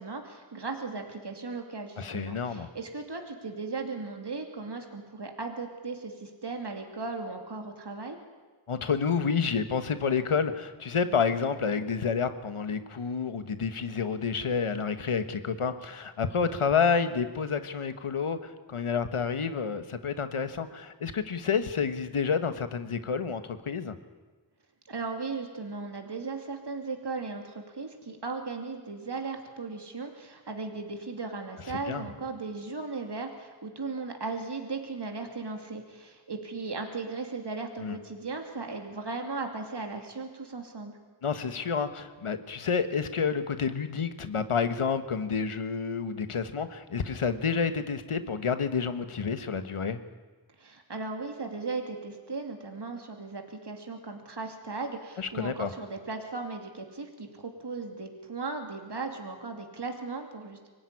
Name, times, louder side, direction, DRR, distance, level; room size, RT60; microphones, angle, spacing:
voice 1, 0.0-8.2 24.9-41.0 50.6-60.7, right 3 dB, 55° right, 3 dB, 2.8 m, -37 dB
voice 2, 2.0-2.7 8.7-24.0 31.7-32.1 37.8-38.0 41.2-50.0 55.2-55.7, left 6 dB, 85° left, 10 dB, 1.4 m, -29 dB
24.5 x 15.5 x 9.8 m, 1.3 s
cardioid pair, 40°, 49 cm